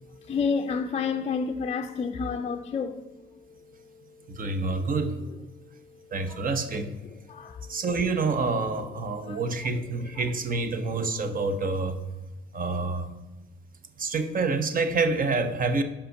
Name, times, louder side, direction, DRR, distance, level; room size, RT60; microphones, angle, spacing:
voice 1, 0.2-3.0 4.7-4.9 6.3-6.4 7.1-7.7 9.2-9.4 10.8-11.0, left 5 dB, 30° left, 0.4 m, -30 dB
voice 2, 4.3-5.1 6.1-6.9 7.7-12.0 12.5-13.1 14.0-15.8, right 3 dB, 45° right, 0.8 m, -27 dB
5.6 x 5.0 x 6.3 m
cardioid pair, 90°, 20 cm